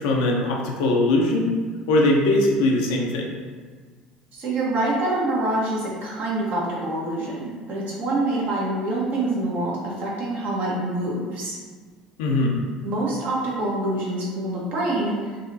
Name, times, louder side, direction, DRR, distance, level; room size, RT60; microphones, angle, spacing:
voice 1, 0.0-1.5 1.9-3.4 12.2-12.6, left 2 dB, 65° left, 0 dB, 0.5 m, -21 dB
voice 2, 4.3-11.5 12.8-15.3, right 2 dB, 45° right, -5 dB, 1.2 m, -26 dB
3.9 x 2.9 x 2.7 m, 1.5 s
figure-of-eight pair, 65°, 4 cm